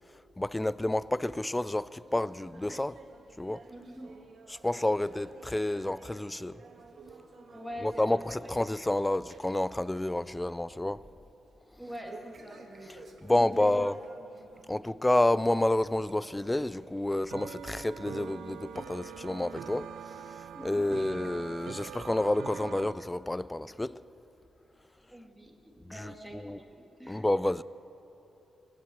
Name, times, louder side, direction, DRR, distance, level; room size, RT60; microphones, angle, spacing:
voice 1, 0.4-3.0 3.4-3.6 4.5-6.6 7.8-11.0 12.9-13.9 14.7-20.3 20.6-24.0 25.8-26.6 27.1-27.6, left 1 dB, 10° left, 0.3 m, -29 dB
sound 1, 2.1-9.6 9.9-10.3 10.6-10.7 12.0-14.7 15.1-15.3 16.0-16.1 17.0-17.1 17.9-18.0, right 3 dB, 50° right, 1.6 m, -52 dB
voice 2, 3.7-4.1 7.5-8.2 11.8-12.6 13.3-13.8 20.5-21.0 25.1-27.2, equal, 5° right, 2.1 m, -44 dB
sound 2, 11.8-15.2 15.5-22.9, right 8 dB, 85° right, 0.5 m, -45 dB
19.5 x 8.4 x 7.9 m
cardioid pair, 105°, 0 cm